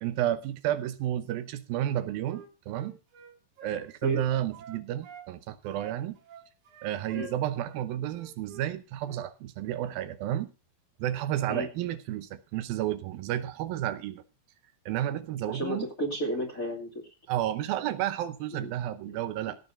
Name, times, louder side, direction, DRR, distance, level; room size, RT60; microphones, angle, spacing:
voice 1, 0.0-3.0 3.6-6.2 6.8-10.5 11.0-14.2 14.9-15.9 17.3-19.6, right 12 dB, 80° right, 2.7 m, -31 dB
Wind instrument woodwind instrument, 1.9-5.3 5.6-8.7 9.0-9.2, right 7 dB, 60° right, 3.4 m, -48 dB
voice 2, 15.5-16.9 18.5-18.7 19.1-19.2, right 1 dB, 25° left, 2.2 m, -32 dB
17.0 x 6.6 x 5.6 m
omnidirectional pair, 4.2 m